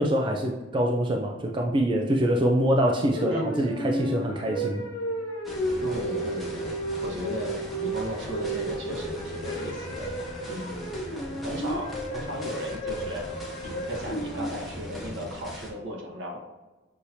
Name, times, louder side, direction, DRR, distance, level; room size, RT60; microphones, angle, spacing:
voice 1, 0.0-4.8, equal, 25° right, 1 dB, 0.4 m, -25 dB
sound 1, 3.1-14.5, right 1 dB, 50° left, 1.4 m, -33 dB
sound 2, 5.4-15.7, left 1 dB, ahead, 0.8 m, -40 dB
voice 2, 5.8-6.7 7.0-7.5 7.8-10.1 10.5-10.9 11.4-13.2 13.6-16.4, equal, 75° right, -1 dB, 1.2 m, -35 dB
6.4 x 2.8 x 2.7 m, 1.1 s
head